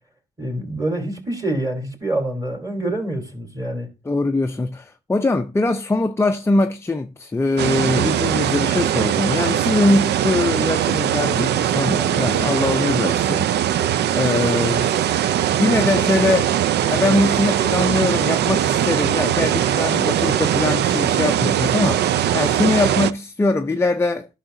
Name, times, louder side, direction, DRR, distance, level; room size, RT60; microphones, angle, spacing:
voice 1, 0.4-3.9, right 1 dB, 20° right, 3.1 m, -26 dB
voice 2, 4.0-15.2 15.6-16.6 16.9-24.3, left 2 dB, 15° left, 0.5 m, -22 dB
sound 1, 7.6-23.1, right 10 dB, 60° right, 0.4 m, -20 dB
11.5 x 5.7 x 2.6 m
supercardioid pair, 60°, 19 cm